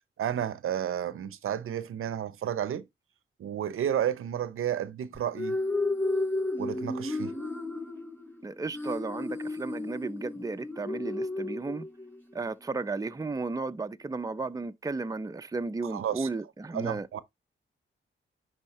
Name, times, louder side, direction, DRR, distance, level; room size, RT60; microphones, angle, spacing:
voice 1, 0.2-2.9 3.4-5.6 6.6-7.3 15.9-16.3 16.7-17.2, right 10 dB, 85° right, 0.7 m, -31 dB
sound 1, 5.1-12.2, left 2 dB, 10° left, 4.5 m, -33 dB
voice 2, 8.4-11.9 12.3-17.2, right 3 dB, 15° right, 0.5 m, -34 dB
10.5 x 3.6 x 3.0 m
cardioid pair, 65°, 21 cm